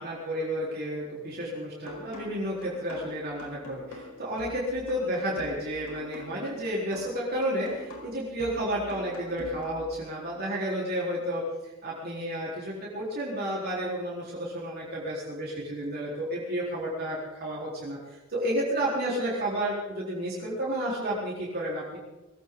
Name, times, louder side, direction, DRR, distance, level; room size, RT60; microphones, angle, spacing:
voice 1, 0.0-22.0, equal, 45° right, -6 dB, 4.3 m, -31 dB
sound 1, 1.9-9.9, left 1 dB, 90° left, 4.9 m, -45 dB
22.0 x 16.5 x 4.0 m, 1.1 s
head